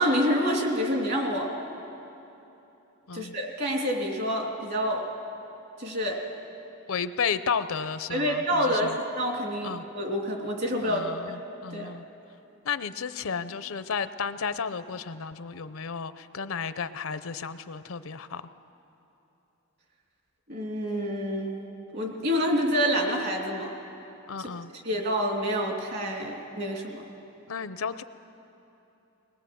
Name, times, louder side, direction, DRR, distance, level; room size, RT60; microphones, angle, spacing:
voice 1, 0.0-1.5 3.1-5.1 5.8-6.2 8.1-11.0 11.7-11.9 20.5-21.6 21.9-23.7 24.8-27.0, equal, 50° right, 1 dB, 2.8 m, -27 dB
voice 2, 6.9-9.0 9.6-9.8 10.8-12.1 12.6-18.5 24.3-24.7 27.5-28.0, left 6 dB, 70° left, 12 dB, 0.6 m, -33 dB
20.0 x 20.0 x 7.7 m, 3.0 s
head